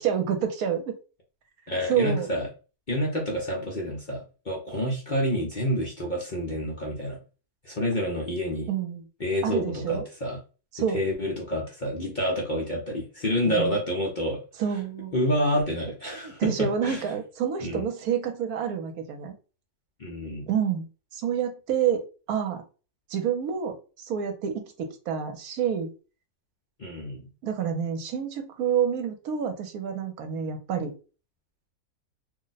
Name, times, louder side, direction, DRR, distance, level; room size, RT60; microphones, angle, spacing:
voice 1, 0.0-0.9 1.9-2.3 8.7-9.0 9.4-10.0 10.7-11.0 13.5-13.8 14.6-15.1 16.1-19.3 20.5-20.8 21.1-22.6 23.1-25.9 27.4-30.9, right 8 dB, 75° right, 6 dB, 1.1 m, -28 dB
voice 2, 1.7-2.5 2.9-7.2 7.6-8.7 9.2-10.4 10.9-14.4 15.1-17.2 17.6-17.9 20.0-20.5 26.8-27.3, equal, 45° left, -3 dB, 0.6 m, -28 dB
2.6 x 2.1 x 3.9 m, 0.34 s
omnidirectional pair, 1.6 m